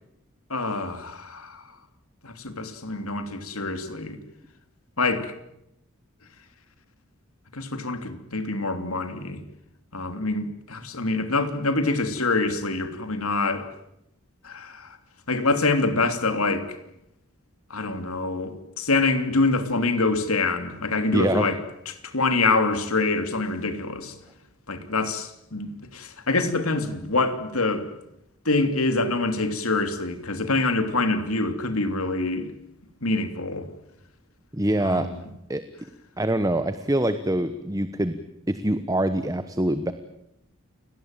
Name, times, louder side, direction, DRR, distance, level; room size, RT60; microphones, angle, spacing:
voice 1, 0.5-1.6 2.2-4.2 5.0-5.3 7.5-9.4 9.9-13.7 14.4-15.0 15.3-16.8 17.7-21.6 21.9-24.1 24.7-27.9 28.4-32.5 33.0-33.7 34.8-35.2, left 3 dB, 85° left, 9 dB, 3.1 m, -25 dB
voice 2, 21.1-21.5 34.5-35.1 35.5-35.7 36.2-38.2 38.5-39.9, right 1 dB, 15° right, 11 dB, 1.1 m, -24 dB
29.5 x 18.5 x 9.1 m, 0.81 s
head